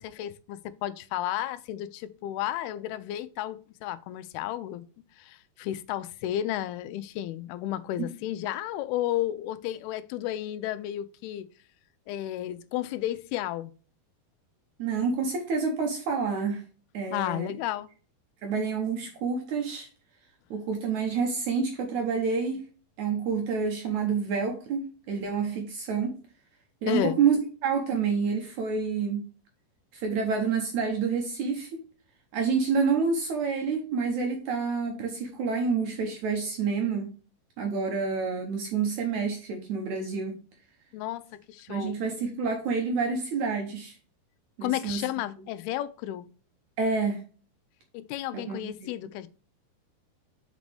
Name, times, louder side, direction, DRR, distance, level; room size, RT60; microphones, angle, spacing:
voice 1, 0.0-4.8 5.2-11.5 12.1-13.7 17.1-17.9 26.9-27.2 40.9-42.0 44.6-46.3 47.9-49.3, left 13 dB, 85° left, 2.5 m, -32 dB
voice 2, 14.8-16.6 16.9-17.5 18.4-19.9 20.5-22.6 23.0-26.1 26.8-29.2 29.9-31.8 32.3-37.1 37.6-40.4 41.7-44.0 44.6-45.0 46.8-47.2 48.3-48.9, right 5 dB, 70° right, 1.9 m, -28 dB
6.0 x 5.2 x 3.4 m
omnidirectional pair, 4.5 m